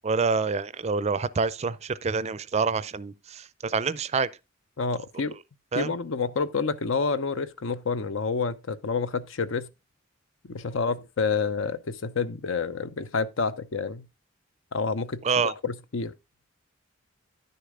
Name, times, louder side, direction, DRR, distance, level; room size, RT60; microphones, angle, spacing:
voice 1, 0.0-4.3 5.7-5.9 15.2-15.5, right 5 dB, 35° right, 0.4 m, -27 dB
voice 2, 4.8-5.3 5.7-9.7 10.5-14.1 14.7-16.1, left 4 dB, 70° left, 0.7 m, -28 dB
10.5 x 6.6 x 3.6 m
head